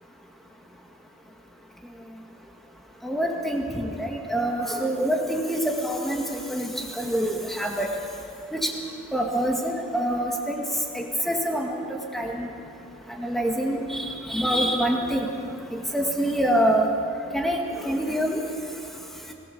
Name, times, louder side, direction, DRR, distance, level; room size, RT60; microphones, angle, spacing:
voice 1, 3.0-7.9 8.5-8.7 9.1-10.7 10.9-11.8 12.1-12.5 13.2-15.3 15.7-16.9 17.3-18.4, equal, ahead, 0 dB, 2.0 m, -26 dB
23.0 x 18.0 x 7.0 m, 2.6 s
head